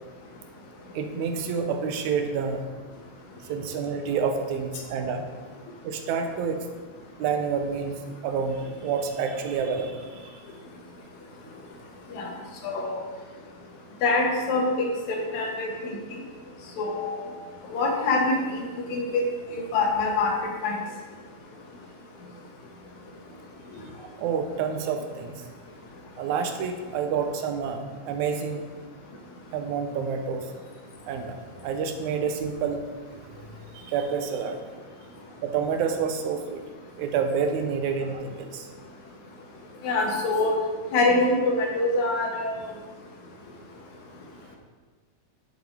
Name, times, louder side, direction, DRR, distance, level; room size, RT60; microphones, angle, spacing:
voice 1, 1.0-2.6 3.4-5.2 5.8-6.6 7.2-8.0 8.2-10.4 24.0-25.3 26.2-28.7 29.5-30.5 31.0-31.4 31.6-32.8 33.7-34.6 35.4-36.6 37.0-38.7, right 6 dB, 85° right, 6 dB, 2.1 m, -28 dB
voice 2, 12.6-13.0 14.0-15.7 16.1-16.2 16.8-17.2 17.7-19.2 19.5-20.8 39.8-40.6 40.9-42.6, left 2 dB, 80° left, 1 dB, 2.4 m, -25 dB
7.8 x 6.7 x 3.6 m, 1.4 s
omnidirectional pair, 3.3 m